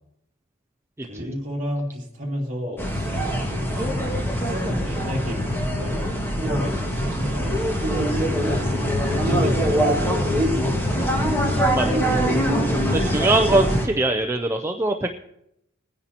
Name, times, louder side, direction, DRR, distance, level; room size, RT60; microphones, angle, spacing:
voice 1, 1.0-8.6 9.1-10.7, equal, 40° right, -2 dB, 2.4 m, -33 dB
sound 1, 2.8-13.9, equal, 10° left, 1.7 m, -23 dB
voice 2, 11.7-12.1 12.9-15.2, right 2 dB, 15° right, 4 dB, 0.4 m, -22 dB
20.5 x 10.0 x 2.9 m, 0.79 s
head